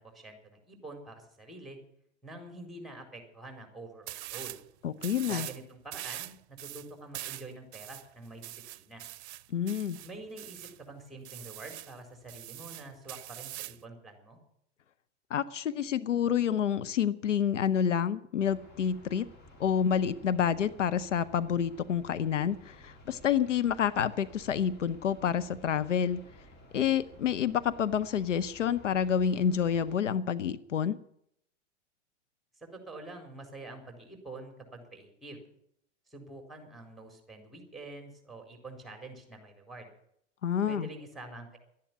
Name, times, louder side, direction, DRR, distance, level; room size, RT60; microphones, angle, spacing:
voice 1, 0.0-1.8 2.2-4.6 5.3-9.0 10.0-14.4 32.6-35.4 36.1-39.9 40.7-41.6, right 2 dB, ahead, 4 dB, 4.4 m, -46 dB
sound 1, 4.1-4.6 5.0-5.6 5.9-10.8 11.3-11.9 12.3-13.8, right 15 dB, 65° right, 0.7 m, -43 dB
voice 2, 4.8-5.5 9.5-10.0 15.3-19.3 19.6-26.2 26.7-31.0 40.4-40.9, left 8 dB, 90° left, 15 dB, 0.8 m, -28 dB
sound 2, 18.4-30.0, left 1 dB, 30° left, 3.2 m, -54 dB
12.5 x 10.5 x 9.6 m, 0.72 s
hypercardioid pair, 105°, 36 cm